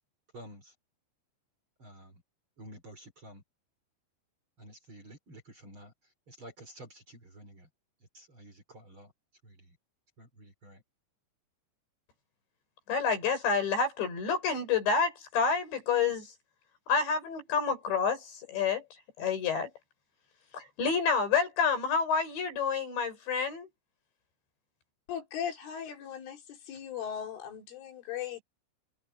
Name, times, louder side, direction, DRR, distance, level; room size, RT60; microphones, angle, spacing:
voice 1, 0.3-0.7 1.8-2.1 2.6-3.4 4.6-5.9 6.3-7.7 8.1-9.1 9.4-9.5 10.2-10.8, right 1 dB, 30° right, 3.8 m, -50 dB
voice 2, 12.9-16.3 16.9-18.8 19.2-19.7 20.5-23.7, left 5 dB, 65° left, 8.2 m, -28 dB
voice 3, 25.1-28.4, left 9 dB, 85° left, 6.1 m, -38 dB
omnidirectional pair, 5.5 m